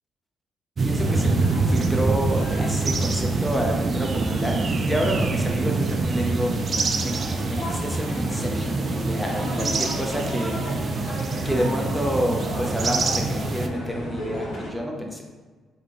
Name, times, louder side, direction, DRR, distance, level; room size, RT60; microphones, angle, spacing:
voice 1, 0.8-10.7 11.4-15.2, equal, 5° left, 0 dB, 0.6 m, -29 dB
sound 1, 0.8-13.7, right 3 dB, 45° right, 0.3 m, -25 dB
sound 2, 1.0-14.7, equal, 70° left, 1.5 m, -33 dB
3.3 x 2.8 x 3.7 m, 1.4 s
cardioid pair, 90°, 0 cm